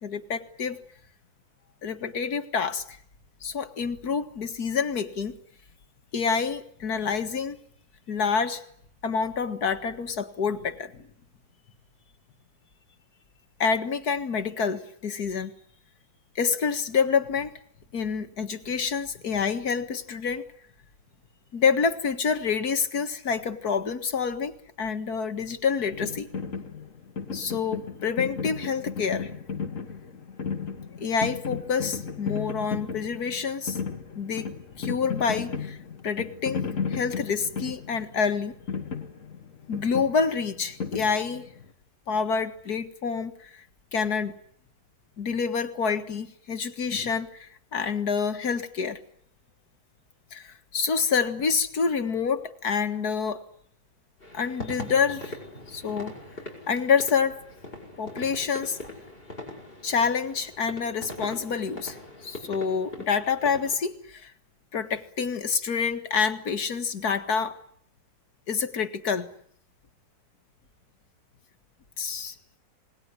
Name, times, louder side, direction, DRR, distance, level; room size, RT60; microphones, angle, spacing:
voice 1, 0.0-0.8 1.8-2.8 3.4-5.4 6.1-7.6 8.1-8.6 9.0-11.0 13.6-15.5 16.4-17.5 17.9-20.4 21.5-24.5 24.8-26.3 27.3-29.3 31.0-33.8 34.2-34.5 34.8-35.8 36.0-36.6 36.9-38.5 39.7-41.5 42.1-43.6 43.9-44.3 45.2-49.0 50.3-53.4 54.3-55.4 55.7-56.1 56.7-57.4 58.0-58.8 59.8-62.0 62.2-64.3 64.7-67.6 68.5-69.3 72.0-72.6, left 6 dB, 85° left, 8 dB, 2.3 m, -27 dB
sound 1, 25.9-41.7, left 5 dB, 60° left, 2.0 m, -35 dB
sound 2, 54.2-63.7, left 1 dB, 35° left, 7.6 m, -41 dB
27.5 x 20.5 x 9.8 m, 0.65 s
omnidirectional pair, 1.6 m